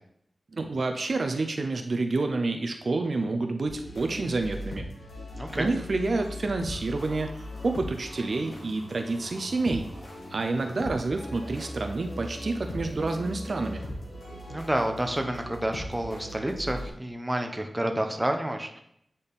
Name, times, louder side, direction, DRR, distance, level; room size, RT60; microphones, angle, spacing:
voice 1, 0.5-4.9 5.5-9.9 10.3-13.8, right 3 dB, 60° right, 5 dB, 0.5 m, -29 dB
sound 1, 3.6-16.9, equal, 80° left, 1.6 m, -39 dB
voice 2, 5.3-5.7 14.5-18.8, right 1 dB, 15° right, 4 dB, 0.8 m, -29 dB
sound 2, 6.7-15.2, equal, 15° left, 2.5 m, -52 dB
8.7 x 4.1 x 3.5 m, 0.74 s
wide cardioid pair, 80°, 0 cm